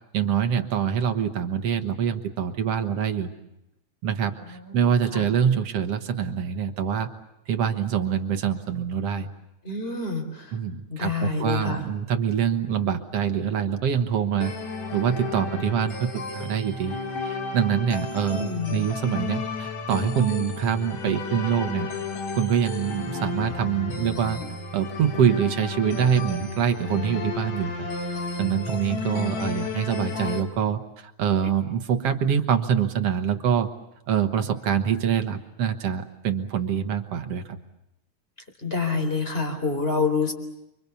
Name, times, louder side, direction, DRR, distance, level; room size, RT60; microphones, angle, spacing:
voice 1, 0.1-3.3 4.0-7.1 7.5-9.3 10.5-14.5 14.9-17.0 17.2-21.9 22.3-24.4 24.7-33.7 34.1-37.6, right 8 dB, 60° right, 7 dB, 2.2 m, -25 dB
voice 2, 9.6-10.5 10.9-11.8 18.3-18.8 29.0-29.5 38.6-40.3, left 4 dB, 20° left, 5 dB, 4.2 m, -27 dB
sound 1, 14.4-30.4, left 4 dB, 65° left, 3.8 m, -33 dB
29.5 x 24.5 x 7.0 m, 0.88 s
omnidirectional pair, 3.4 m